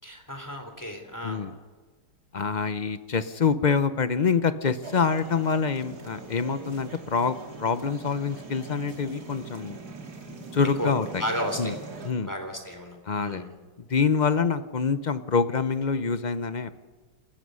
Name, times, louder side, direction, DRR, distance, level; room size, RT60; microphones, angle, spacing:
voice 1, 0.0-1.4 10.8-10.9 11.2-11.7 12.2-13.5, equal, 10° left, 4 dB, 3.4 m, -33 dB
voice 2, 1.2-1.5 2.3-9.8 10.5-11.2 11.6-11.7 12.0-12.3 13.1-13.4 13.9-16.7, left 5 dB, 45° left, 12 dB, 0.5 m, -26 dB
sound 1, 4.8-12.1, right 3 dB, 65° right, 2.8 m, -42 dB
27.5 x 15.0 x 6.4 m, 1.4 s
omnidirectional pair, 1.8 m